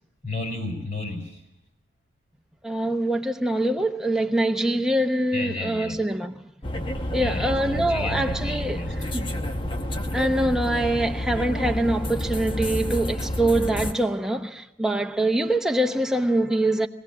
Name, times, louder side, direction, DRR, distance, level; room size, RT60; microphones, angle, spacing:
voice 1, 0.2-1.4 5.3-6.0 7.2-9.2, left 2 dB, 45° left, 4.9 m, -32 dB
voice 2, 2.6-6.4 7.1-8.8 9.1-9.3 10.1-16.9, right 1 dB, 5° right, 0.9 m, -24 dB
sound 1, 6.6-13.9, left 1 dB, 30° left, 1.1 m, -29 dB
23.0 x 17.5 x 7.3 m
head